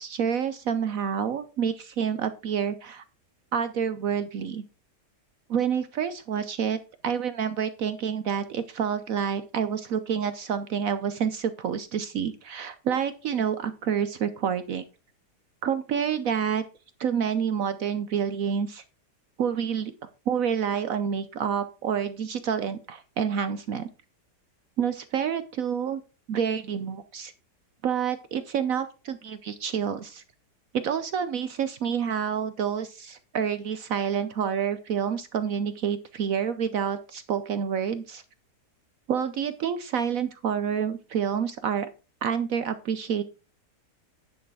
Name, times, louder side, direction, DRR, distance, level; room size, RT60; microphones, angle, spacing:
voice 1, 0.0-3.0 3.5-4.6 5.5-6.8 7.0-14.8 15.6-16.6 17.0-18.8 19.4-19.9 20.3-23.9 24.8-26.0 26.3-27.3 27.8-30.2 30.8-38.2 39.1-41.9 42.2-43.2, right 7 dB, 65° right, 12 dB, 1.0 m, -28 dB
10.0 x 6.4 x 4.7 m, 0.32 s
omnidirectional pair, 1.8 m